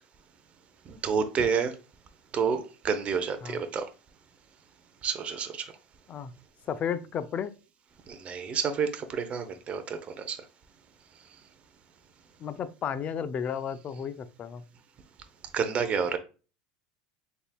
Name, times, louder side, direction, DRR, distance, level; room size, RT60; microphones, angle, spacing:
voice 1, 0.9-1.7 2.3-3.9 5.0-5.7 8.1-10.4 15.5-16.2, right 6 dB, 35° right, 0.7 m, -29 dB
voice 2, 6.7-7.5 12.4-14.6, left 7 dB, 35° left, 0.4 m, -33 dB
3.9 x 3.6 x 2.2 m
hypercardioid pair, 95°, 4 cm